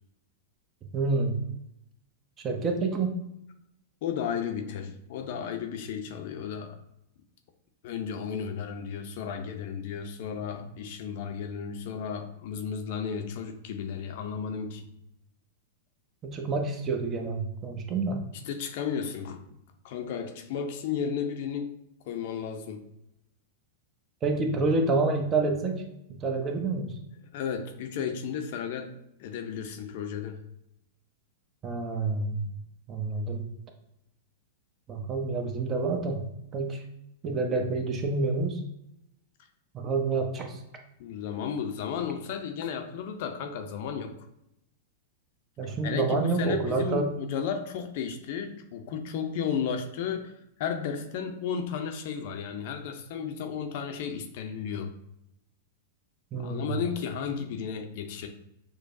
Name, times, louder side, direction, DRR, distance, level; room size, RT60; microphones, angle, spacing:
voice 1, 0.9-1.4 2.4-3.1 16.2-18.2 24.2-25.8 26.1-26.9 31.6-32.4 32.9-33.4 34.9-36.2 36.5-36.8 37.2-38.6 39.7-40.6 45.6-47.1 56.3-56.7, right 3 dB, 30° right, 4 dB, 0.8 m, -28 dB
voice 2, 4.0-6.8 7.8-14.9 18.5-19.4 19.8-21.8 22.0-22.8 27.3-28.9 29.2-30.4 41.0-44.1 45.8-50.3 50.6-54.9 56.3-58.3, left 7 dB, 55° left, 5 dB, 0.6 m, -33 dB
6.3 x 2.2 x 2.6 m, 0.81 s
hypercardioid pair, 100°, 0 cm